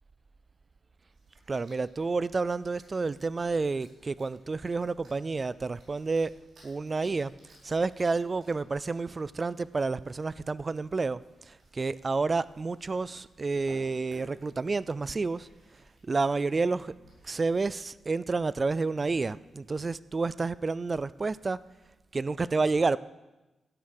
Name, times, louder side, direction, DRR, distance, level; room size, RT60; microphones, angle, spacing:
sound 1, 1.1-17.6, right 1 dB, 60° right, 4.6 m, -61 dB
voice 1, 1.5-6.3 6.6-7.3 7.6-15.5 16.0-16.9 17.2-21.6 22.1-23.0, right 3 dB, 25° right, 18 dB, 0.3 m, -30 dB
12.5 x 9.5 x 6.5 m, 1.1 s
wide cardioid pair, 150°, 0 cm